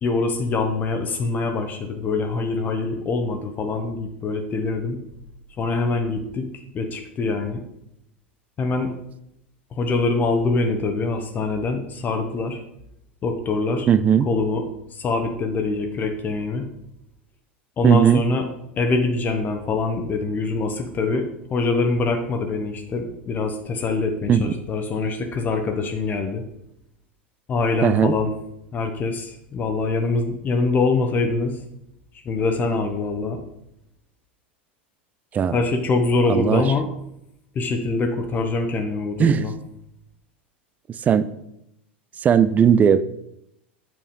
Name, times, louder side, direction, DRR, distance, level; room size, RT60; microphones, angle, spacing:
voice 1, 0.0-5.0 5.6-6.5 6.7-7.6 8.6-8.9 9.7-12.6 13.2-13.9 14.3-14.6 14.9-16.7 17.8-18.5 18.8-26.4 27.5-28.3 28.7-31.6 32.2-33.4 35.5-36.9 37.5-39.5, left 3 dB, 30° left, 5 dB, 1.2 m, -24 dB
voice 2, 13.9-14.3 17.8-18.2 24.3-24.5 27.8-28.2 35.3-35.6 36.3-36.7 39.2-39.4 41.1-41.2 42.2-43.0, right 8 dB, 25° right, 16 dB, 0.6 m, -17 dB
9.3 x 7.1 x 5.3 m, 0.79 s
figure-of-eight pair, 80°, 6 cm